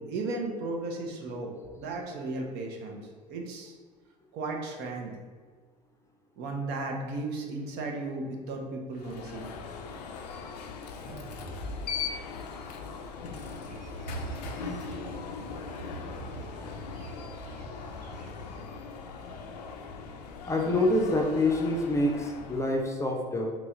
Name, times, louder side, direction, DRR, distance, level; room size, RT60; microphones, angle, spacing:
voice 1, 0.0-3.0 3.3-3.7 4.3-5.1 6.4-9.5, right 2 dB, 55° right, 1 dB, 0.8 m, -35 dB
Alarm, 8.9-22.9, left 5 dB, 75° left, 0.4 m, -40 dB
sound 1, 11.1-14.3, equal, 30° right, 0.7 m, -45 dB
sound 2, 13.3-18.6, right 4 dB, 85° right, 0.4 m, -43 dB
voice 2, 20.5-23.5, left 1 dB, 15° left, 1 dB, 0.6 m, -26 dB
3.0 x 3.0 x 3.6 m, 1.5 s
hypercardioid pair, 70°, 21 cm